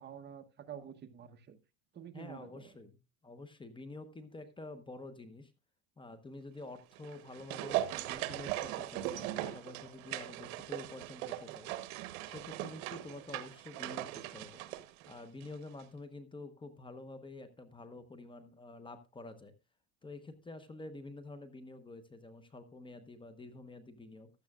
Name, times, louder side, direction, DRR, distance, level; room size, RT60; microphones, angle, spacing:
voice 1, 0.0-1.6 1.9-2.7, right 8 dB, 25° right, 1.0 m, -48 dB
voice 2, 2.1-5.5 6.0-11.7 12.2-14.6 15.0-19.5 20.0-24.3, left 2 dB, 10° left, 1.0 m, -48 dB
sound 1, 6.9-15.5 15.8-15.9, right 14 dB, 80° right, 1.1 m, -39 dB
15.5 x 12.0 x 2.4 m
supercardioid pair, 140°, 42 cm